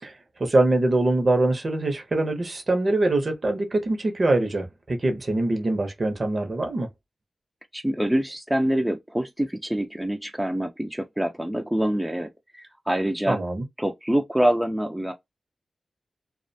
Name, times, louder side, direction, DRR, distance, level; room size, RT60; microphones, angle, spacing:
voice 1, 0.4-6.9 13.3-13.6, right 2 dB, 50° right, 0.7 m, -23 dB
voice 2, 7.7-13.4 13.8-15.1, right 1 dB, 10° right, 0.4 m, -25 dB
2.4 x 2.1 x 2.6 m
wide cardioid pair, 75°, 0 cm